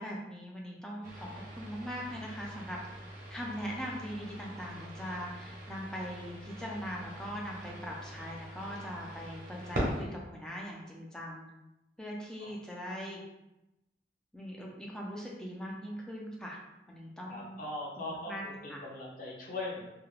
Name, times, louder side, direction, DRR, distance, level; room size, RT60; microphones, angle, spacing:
voice 1, 0.0-2.8 3.3-11.4 12.0-13.2 14.3-16.6 16.9-17.6 18.0-18.4 18.7-18.8, equal, 5° left, -3 dB, 0.4 m, -41 dB
sound 1, 1.0-10.0, equal, 50° right, 0.7 m, -42 dB
voice 2, 17.3-19.9, left 2 dB, 50° left, -5 dB, 0.7 m, -40 dB
2.3 x 2.2 x 3.1 m, 0.95 s
head